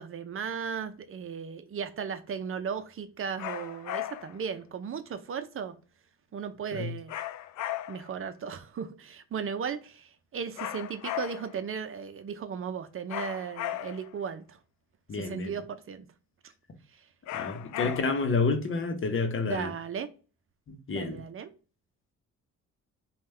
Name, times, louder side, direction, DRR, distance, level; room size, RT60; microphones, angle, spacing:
voice 1, 0.0-5.7 6.3-7.1 7.9-14.6 15.1-16.1 17.7-18.1 19.4-20.1 20.9-21.5, right 7 dB, 45° right, 0.6 m, -36 dB
sound 1, 3.4-4.4 7.1-8.2 10.6-11.6 13.1-14.2 17.3-18.3, left 13 dB, 70° left, 0.5 m, -36 dB
voice 2, 15.1-15.5 17.3-19.7 20.7-21.2, left 4 dB, 40° left, 0.9 m, -29 dB
5.2 x 2.4 x 3.3 m
cardioid pair, 90°, 30 cm